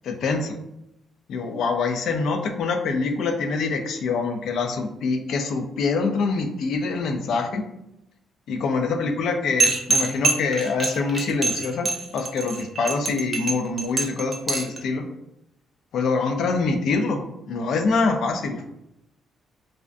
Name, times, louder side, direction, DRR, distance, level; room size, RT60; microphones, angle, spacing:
voice 1, 0.0-0.6 1.3-7.6 8.5-15.1 15.9-17.2 17.5-18.6, left 4 dB, 70° left, 6 dB, 0.3 m, -25 dB
sound 1, 9.6-14.8, right 2 dB, 35° right, 0.5 m, -24 dB
2.4 x 2.1 x 2.5 m, 0.85 s
cardioid pair, 90°, 0 cm